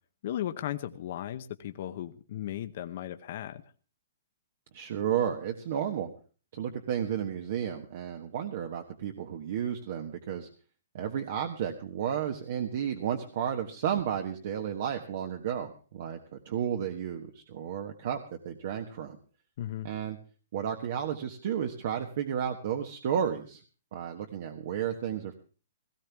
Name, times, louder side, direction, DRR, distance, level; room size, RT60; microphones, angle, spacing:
voice 1, 0.2-3.6 19.6-19.9, left 12 dB, 50° left, 9 dB, 0.9 m, -36 dB
voice 2, 4.7-6.1 6.5-10.5 10.9-19.2 19.8-20.2 20.5-23.6 23.9-25.3, right 9 dB, 55° right, 5 dB, 1.3 m, -32 dB
17.5 x 15.0 x 3.5 m, 0.38 s
hypercardioid pair, 155°, 0 cm